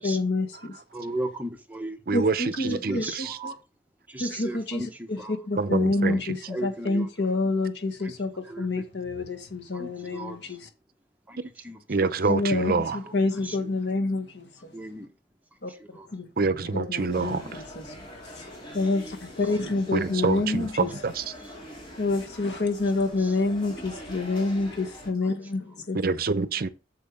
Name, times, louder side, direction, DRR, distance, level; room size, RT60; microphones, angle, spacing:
voice 1, 0.0-0.8 2.1-3.3 4.2-4.8 5.1-10.7 12.3-14.7 15.6-15.7 16.1-16.3 16.7-17.8 18.3-18.4 18.7-20.9 22.0-26.0, left 3 dB, 80° left, 1.6 m, -28 dB
voice 2, 0.9-2.0 2.7-3.6 4.1-5.4 6.1-6.2 6.5-7.1 8.0-8.1 8.4-8.9 9.7-10.6 11.3-11.4 11.6-11.8 12.9-13.1 13.4-13.7 14.7-15.1 15.7-16.1 20.5-20.6 23.2-23.4 24.7-24.9, right 1 dB, 10° right, 1.0 m, -36 dB
voice 3, 2.1-3.4 5.6-6.2 11.9-13.0 16.4-17.4 19.9-21.2 26.0-26.7, right 4 dB, 55° right, 0.6 m, -26 dB
sound 1, 17.1-25.1, equal, 30° left, 3.1 m, -44 dB
8.1 x 6.9 x 3.6 m
head